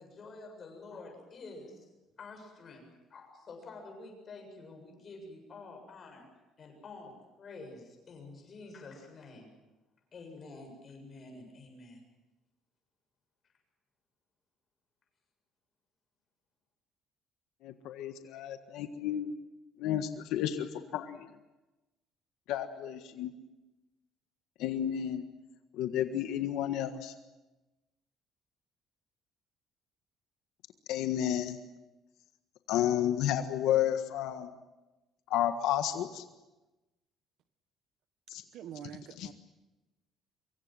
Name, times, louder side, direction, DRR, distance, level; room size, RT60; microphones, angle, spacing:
voice 1, 0.0-1.9 2.2-2.8 3.1-6.3 6.6-9.5 10.1-12.0, left 3 dB, 30° left, 3 dB, 7.6 m, -48 dB
voice 2, 17.6-19.3 19.8-21.2 22.5-23.3 24.6-25.2 25.8-27.1 30.9-31.6 32.7-34.5 35.3-36.2 38.3-38.4 39.2-39.3, left 11 dB, 80° left, 7 dB, 1.5 m, -31 dB
voice 3, 38.5-39.3, right 9 dB, 60° right, 11 dB, 1.3 m, -45 dB
25.0 x 23.5 x 7.7 m, 1.1 s
cardioid pair, 165°, 0 cm